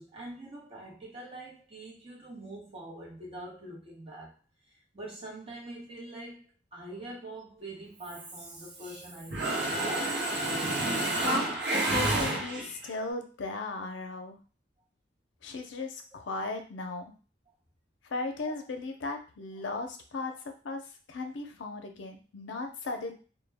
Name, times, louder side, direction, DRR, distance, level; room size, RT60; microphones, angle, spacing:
voice 1, 0.0-4.4 4.9-10.0 17.5-17.6 20.2-20.3, right 1 dB, 30° right, 0.9 m, -44 dB
Mechanisms, 8.1-9.0 9.3-12.9, right 2 dB, 60° right, 0.7 m, -30 dB
voice 2, 11.2-14.4 15.4-17.1 18.0-20.3 20.6-23.1, left 3 dB, 80° left, 0.5 m, -36 dB
2.1 x 2.1 x 3.3 m
head